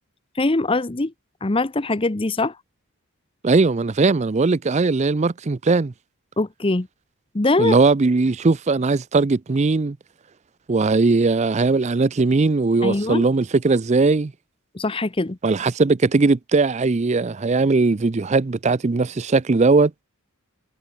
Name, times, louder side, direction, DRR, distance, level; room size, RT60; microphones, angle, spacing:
voice 1, 0.4-1.1 1.4-2.5 6.4-6.9 7.3-7.7 12.8-13.3 14.7-15.4, left 2 dB, 25° left, 0.7 m, -22 dB
voice 2, 3.4-5.9 7.6-10.0 10.7-14.3 15.4-19.9, right 3 dB, 30° right, 0.5 m, -19 dB
head